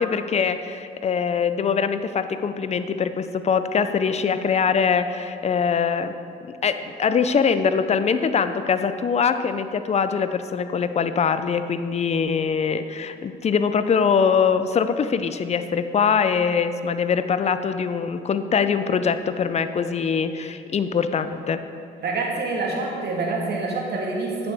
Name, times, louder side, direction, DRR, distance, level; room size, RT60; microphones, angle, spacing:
voice 1, 0.0-6.2 6.6-21.6, left 6 dB, 35° left, 11 dB, 0.5 m, -23 dB
voice 2, 22.0-24.5, right 3 dB, 60° right, 0 dB, 1.6 m, -26 dB
8.9 x 6.9 x 3.5 m, 2.5 s
supercardioid pair, 75°, 20 cm